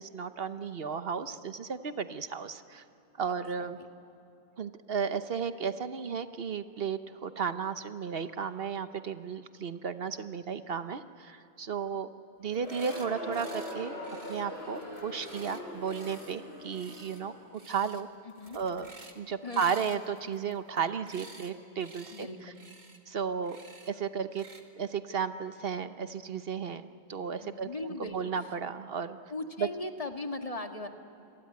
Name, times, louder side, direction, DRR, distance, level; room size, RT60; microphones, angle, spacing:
voice 1, 0.0-2.8 3.2-3.8 4.6-12.1 12.4-14.0 14.3-18.1 18.5-18.9 19.2-22.3 23.1-23.6 23.9-24.4 24.8-27.7 28.1-29.2 29.6-29.7, right 6 dB, 65° right, 10 dB, 1.1 m, -34 dB
voice 2, 3.3-3.9 11.9-12.0 18.2-18.6 19.4-19.9 22.1-22.6 27.4-28.2 29.3-30.9, left 2 dB, 35° left, 5 dB, 1.7 m, -39 dB
Crowd, 12.4-17.4, left 1 dB, 75° left, 6.6 m, -42 dB
sound 1, 12.5-13.1 13.3-13.7 14.0-16.3 16.7-17.2 17.5-18.0 18.3-19.2 19.5-21.5 21.8-22.3 22.5-23.0 23.4-23.9 24.3-24.6, right 2 dB, 45° right, 2.2 m, -52 dB
28.0 x 22.5 x 9.5 m, 2.8 s
omnidirectional pair, 1.1 m